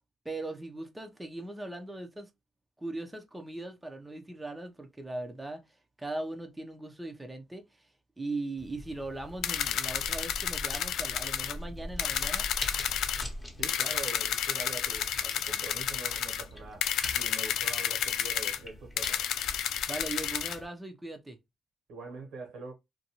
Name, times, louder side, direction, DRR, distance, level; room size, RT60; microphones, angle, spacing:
voice 1, 0.2-2.3 2.8-5.6 6.0-7.9 8.2-12.5 19.6-21.4, right 2 dB, 10° right, 0.6 m, -39 dB
sound 1, 8.6-20.7, left 1 dB, 10° left, 0.9 m, -44 dB
sound 2, 9.4-11.6 12.0-13.2 13.6-16.4 16.8-18.6 19.0-20.6, left 9 dB, 80° left, 0.3 m, -31 dB
voice 2, 13.5-19.2 21.9-22.7, right 3 dB, 80° right, 1.1 m, -44 dB
2.6 x 2.2 x 2.8 m
cardioid pair, 100°, 0 cm